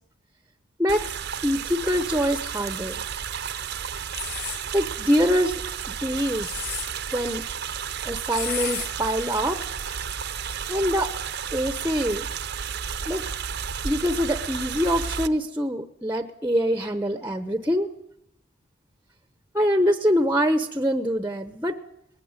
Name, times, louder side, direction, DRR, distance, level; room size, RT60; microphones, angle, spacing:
sound 1, 0.9-15.3, right 7 dB, 50° right, 0.8 m, -32 dB
voice 1, 1.4-3.0 4.7-5.6 6.0-6.5 7.1-7.4 8.0-9.6 10.7-11.1 11.5-12.3 13.1-13.2 13.8-17.9 19.5-21.8, equal, 10° right, 10 dB, 0.8 m, -24 dB
sound 2, 4.1-4.6 6.2-6.9 8.3-8.9, left 8 dB, 50° left, 7.1 m, -32 dB
20.0 x 16.0 x 9.5 m, 0.76 s
head